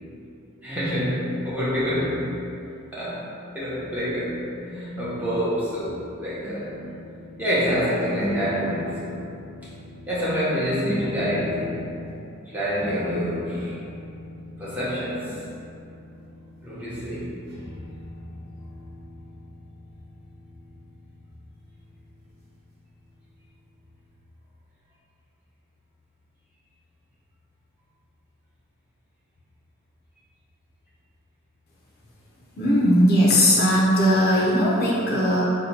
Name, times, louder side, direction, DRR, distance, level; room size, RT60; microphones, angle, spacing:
voice 1, 0.6-2.3 2.9-3.3 3.5-6.7 7.4-9.3 10.1-11.8 12.5-13.8 14.6-15.4 16.6-17.4, equal, 10° right, -11 dB, 0.8 m, -27 dB
sound 1, 5.6-6.1 6.4-7.8 8.2-10.2 10.8-12.2 12.8-16.7 17.4-23.9, equal, 55° right, 0.8 m, -38 dB
voice 2, 32.6-35.4, equal, 50° left, -5 dB, 0.5 m, -19 dB
2.8 x 2.2 x 4.1 m, 2.7 s
head